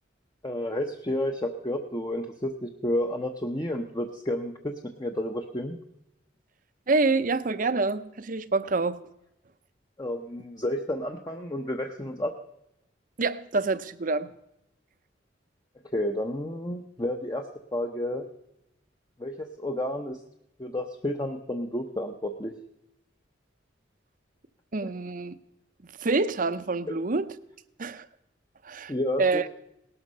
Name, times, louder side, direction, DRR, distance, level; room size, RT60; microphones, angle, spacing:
voice 1, 0.4-5.8 10.0-12.3 15.9-18.2 19.2-20.2 20.6-22.5 28.9-29.5, left 1 dB, 20° left, 0.9 m, -31 dB
voice 2, 6.9-9.0 13.2-14.3 24.7-25.3 26.0-27.3 27.8-28.1 28.6-28.9 29.2-29.4, right 3 dB, 45° right, 0.7 m, -26 dB
18.5 x 12.5 x 5.5 m
head